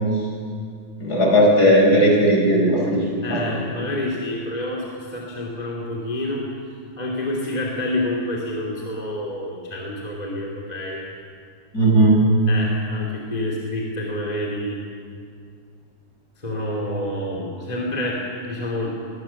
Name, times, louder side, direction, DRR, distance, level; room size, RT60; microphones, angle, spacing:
voice 1, 1.0-3.0 3.3-3.6 11.7-12.2, right 1 dB, 30° left, -1 dB, 5.0 m, -16 dB
voice 2, 3.2-6.4 7.0-11.0 12.5-14.8 16.4-18.9, left 1 dB, 15° left, -3 dB, 2.5 m, -28 dB
22.0 x 16.5 x 7.2 m, 2.2 s
omnidirectional pair, 3.3 m